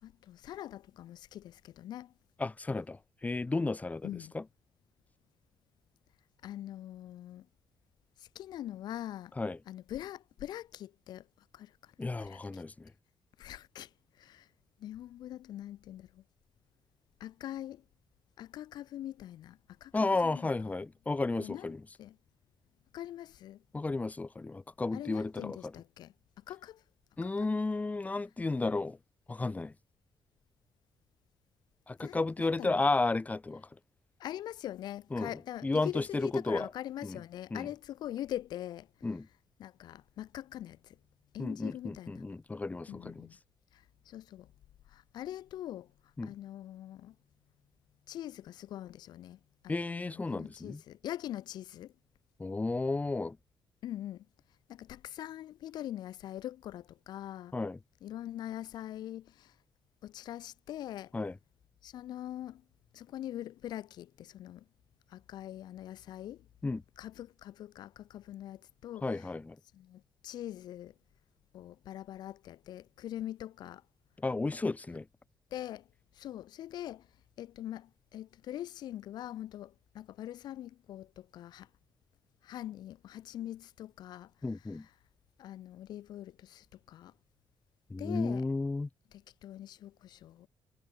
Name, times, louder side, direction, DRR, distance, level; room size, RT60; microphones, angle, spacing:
voice 1, 0.0-2.1 4.0-4.4 6.4-7.5 8.2-9.3 9.7-11.3 11.5-11.9 12.2-12.6 13.4-13.9 14.2-14.5 14.8-16.2 17.2-17.8 18.4-20.5 21.3-21.7 22.0-22.2 22.9-23.6 24.9-26.8 27.2-27.5 32.0-32.9 34.2-38.9 39.6-41.0 41.3-42.3 42.9-43.4 43.7-44.5 44.9-45.9 46.2-47.2 48.1-51.9 53.8-54.3 54.7-57.6 58.0-59.6 60.0-61.1 61.8-62.6 62.9-64.6 65.1-66.5 67.0-69.3 69.7-70.9 71.5-73.8 74.9-75.0 75.5-75.9 76.1-77.1 77.4-81.7 82.4-84.9 85.4-87.1 88.0-88.5 89.1-90.5, left 12 dB, 90° left, 3.9 m, -43 dB
voice 2, 2.4-4.1 4.3-4.4 9.4-9.6 12.0-12.9 19.9-21.8 23.7-25.6 27.2-29.0 29.3-29.7 31.9-33.7 35.1-35.3 35.6-36.7 37.0-37.2 37.5-37.7 39.0-39.3 41.4-43.1 46.2-46.3 49.7-50.8 52.4-53.4 57.5-57.8 61.1-61.3 66.6-66.8 69.0-69.5 74.2-75.0 84.4-84.8 87.9-88.9, left 3 dB, 20° left, 1.6 m, -33 dB
cardioid pair, 95°, 7 cm